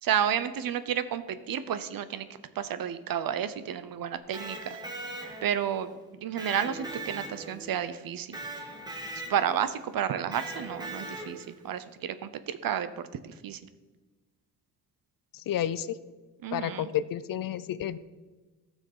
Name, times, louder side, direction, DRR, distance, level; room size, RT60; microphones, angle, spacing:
voice 1, 0.0-2.3 2.5-4.8 5.4-8.4 9.1-13.6 16.4-16.9, right 9 dB, 65° right, 13 dB, 0.8 m, -31 dB
Electric guitar, 4.2-5.7 6.4-7.8 8.3-9.6 10.3-11.5, right 2 dB, 10° right, 1.7 m, -40 dB
voice 2, 15.3-16.0 16.5-18.0, left 10 dB, 60° left, 16 dB, 0.6 m, -31 dB
15.0 x 6.4 x 5.5 m, 1.3 s
wide cardioid pair, 150°, 38 cm